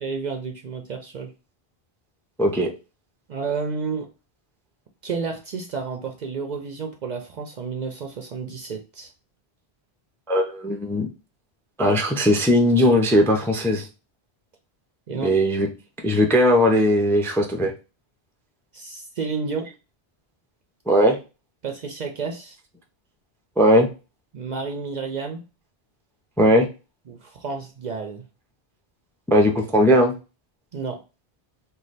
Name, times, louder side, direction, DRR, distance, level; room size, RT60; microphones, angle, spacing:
voice 1, 0.0-1.3 3.3-4.1 5.0-9.1 15.1-15.3 18.7-19.7 21.6-22.6 24.3-25.4 27.1-28.2 30.7-31.0, right 5 dB, 55° right, 4 dB, 0.5 m, -31 dB
voice 2, 10.3-11.1 11.8-13.9 15.2-15.7 16.0-17.7 20.9-21.2 23.6-23.9 26.4-26.7 29.3-30.1, equal, 5° left, 2 dB, 0.4 m, -18 dB
3.2 x 2.2 x 4.0 m, 0.30 s
omnidirectional pair, 1.1 m